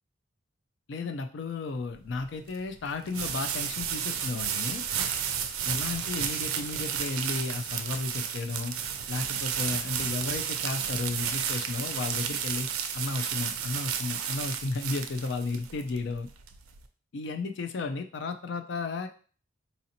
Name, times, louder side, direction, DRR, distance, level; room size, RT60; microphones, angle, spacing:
voice 1, 0.9-4.8 5.6-8.7 9.1-16.3 17.1-19.1, left 3 dB, 55° left, 6 dB, 0.4 m, -33 dB
sound 1, 2.0-16.8, right 8 dB, 90° right, 0.4 m, -32 dB
4.0 x 2.6 x 2.8 m, 0.40 s
head